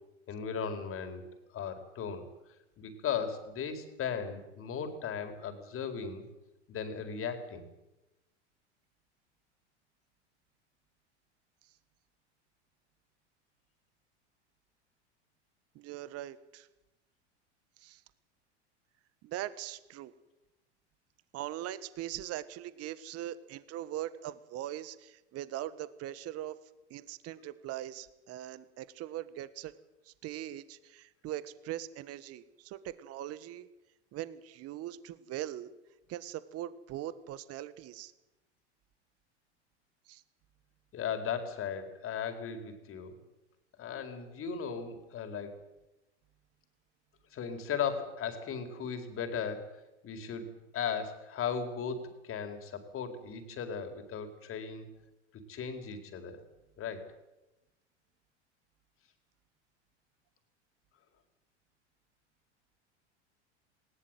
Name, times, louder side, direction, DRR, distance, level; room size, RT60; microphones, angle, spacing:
voice 1, 0.3-1.2 1.5-2.3 2.8-6.2 6.7-7.6 40.9-43.2 43.8-45.5 47.3-49.7 50.0-54.9 55.5-56.4 56.8-57.1, left 7 dB, 40° left, 7 dB, 4.4 m, -37 dB
voice 2, 15.7-16.7 17.8-18.0 19.2-20.1 21.3-26.6 26.9-29.7 30.0-33.7 34.1-35.7 36.1-38.1 40.1-40.2, right 13 dB, 45° right, 16 dB, 1.4 m, -41 dB
19.5 x 19.0 x 9.2 m, 0.97 s
hypercardioid pair, 85°, 35 cm